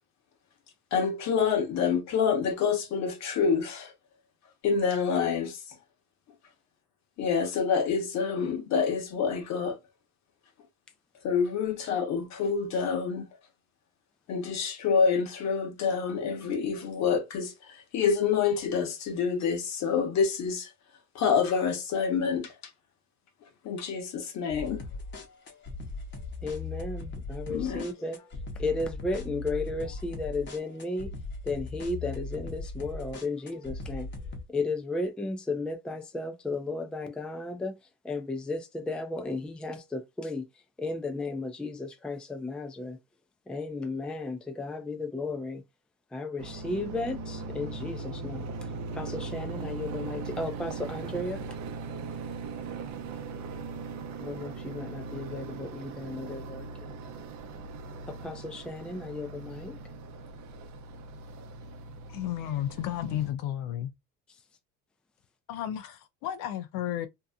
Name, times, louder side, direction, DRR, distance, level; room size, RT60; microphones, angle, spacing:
voice 1, 0.9-3.9 4.6-5.6 7.2-9.8 11.2-13.3 14.3-17.5 17.9-20.7 21.1-22.5 23.6-24.8 27.5-27.9, left 6 dB, 55° left, 1.0 m, -27 dB
sound 1, 24.5-34.4, left 3 dB, 35° left, 0.8 m, -39 dB
voice 2, 26.4-28.2 28.6-31.1 31.4-34.1 34.5-37.8 38.0-40.5 40.8-43.0 43.5-45.6 46.1-48.5 48.9-51.4 54.2-57.0 58.1-59.8, left 2 dB, 5° left, 0.4 m, -34 dB
sound 2, 46.4-63.3, right 4 dB, 60° right, 0.6 m, -39 dB
voice 3, 62.1-63.9 65.5-67.1, left 11 dB, 75° left, 0.5 m, -33 dB
2.7 x 2.3 x 2.3 m
cardioid pair, 105°, 32 cm